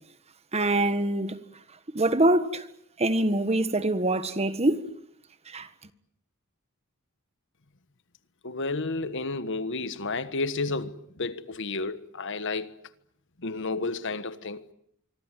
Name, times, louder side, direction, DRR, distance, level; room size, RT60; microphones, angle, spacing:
voice 1, 0.5-1.4 1.9-2.6 3.0-4.8 5.5-5.7, right 1 dB, 30° right, 1.5 m, -24 dB
voice 2, 8.4-12.7 13.4-14.6, left 3 dB, 55° left, 1.4 m, -31 dB
25.5 x 24.5 x 9.1 m
head